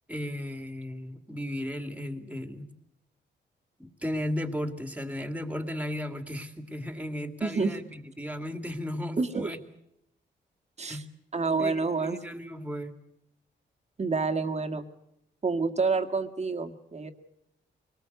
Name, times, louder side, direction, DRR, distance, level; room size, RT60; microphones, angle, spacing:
voice 1, 0.1-2.7 3.8-9.6 10.9-11.1 11.6-11.7 12.0-13.0, equal, 5° right, 8 dB, 2.5 m, -35 dB
voice 2, 7.4-7.8 9.2-9.5 10.8-11.0 11.3-12.2 14.0-14.9 15.4-17.1, right 4 dB, 35° right, 6 dB, 1.9 m, -28 dB
24.0 x 19.5 x 8.2 m, 0.79 s
cardioid pair, 90°, 19 cm